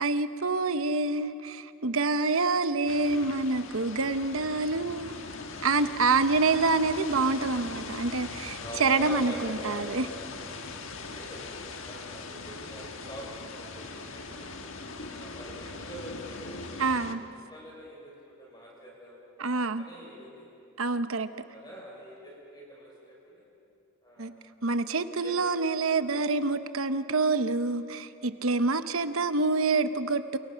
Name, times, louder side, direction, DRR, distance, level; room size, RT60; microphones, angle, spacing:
voice 1, 0.0-5.2 5.6-10.1 16.8-17.2 19.4-19.9 20.8-21.3 24.2-24.3 24.6-30.4, right 3 dB, 75° right, 11 dB, 1.0 m, -27 dB
sound 1, 2.9-17.1, left 4 dB, 65° left, 1.5 m, -41 dB
voice 2, 8.5-10.5 11.0-11.4 11.8-14.5 15.0-17.2 17.5-19.2 19.8-20.5 21.5-23.5 24.0-24.4 25.2-25.5, equal, 20° left, -4 dB, 6.6 m, -44 dB
29.0 x 28.5 x 5.8 m, 2.7 s
head